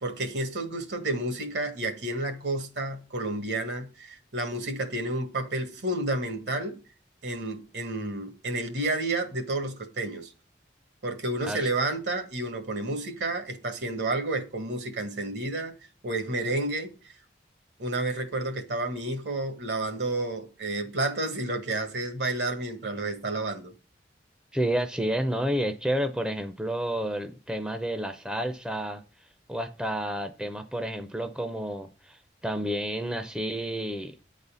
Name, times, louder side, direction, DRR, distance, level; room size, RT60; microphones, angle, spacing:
voice 1, 0.0-6.8 7.2-10.3 11.0-15.7 16.0-17.1 17.8-23.7, right 2 dB, 75° right, 1.5 m, -30 dB
voice 2, 24.5-29.0 29.5-34.2, right 1 dB, 5° right, 0.5 m, -30 dB
9.4 x 4.1 x 6.8 m
head